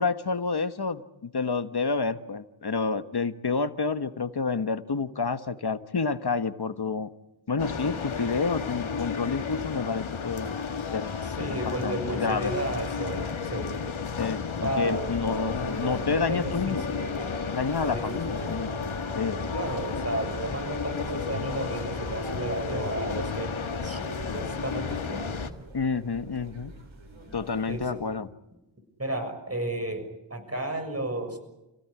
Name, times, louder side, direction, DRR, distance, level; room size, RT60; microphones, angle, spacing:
voice 1, 0.0-7.1 7.5-10.5 10.9-11.1 11.5-12.5 14.2-16.8 17.5-18.7 19.2-19.4 25.7-26.7 27.3-28.3, left 4 dB, 55° left, 11 dB, 1.3 m, -29 dB
sound 1, 7.6-25.5, left 5 dB, 90° left, 1.9 m, -33 dB
voice 2, 11.2-13.8 14.6-15.1 16.1-17.2 17.8-18.2 19.5-23.6 23.8-25.3 27.7-28.0 29.0-31.4, right 1 dB, 30° right, 7 dB, 6.6 m, -33 dB
sound 2, 14.9-27.9, right 1 dB, 85° right, 6.5 m, -40 dB
29.5 x 17.0 x 10.0 m, 0.95 s
wide cardioid pair, 70°, 46 cm